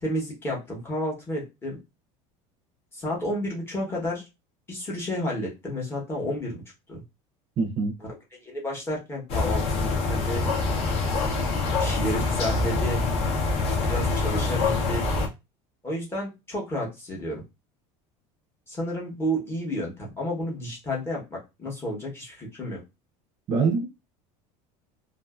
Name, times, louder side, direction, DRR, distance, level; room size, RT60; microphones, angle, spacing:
voice 1, 0.0-1.8 2.9-4.2 4.7-6.6 6.9-7.0 8.4-10.5 11.3-11.4 11.8-13.1 13.8-15.1 15.8-17.4 18.7-22.8, equal, 15° left, 1.0 m, -31 dB
voice 2, 7.6-7.9 23.5-23.8, right 4 dB, 35° right, 0.6 m, -24 dB
sound 1, 9.3-15.3, left 3 dB, 40° left, 0.8 m, -25 dB
2.6 x 2.5 x 2.3 m
cardioid pair, 170°, 15 cm